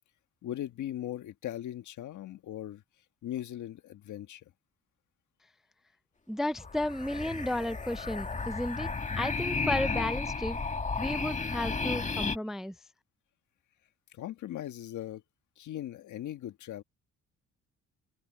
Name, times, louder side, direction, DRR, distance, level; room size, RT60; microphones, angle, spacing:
voice 1, 0.4-2.8 3.2-4.4 14.1-15.2 15.6-16.8, left 12 dB, 75° left, 1.6 m, -39 dB
voice 2, 6.3-8.9 9.2-10.6 11.0-12.7, left 1 dB, ahead, 0.4 m, -33 dB
sound 1, 6.6-12.4, left 4 dB, 25° left, 2.0 m, -33 dB
open air
cardioid pair, 90°, 30 cm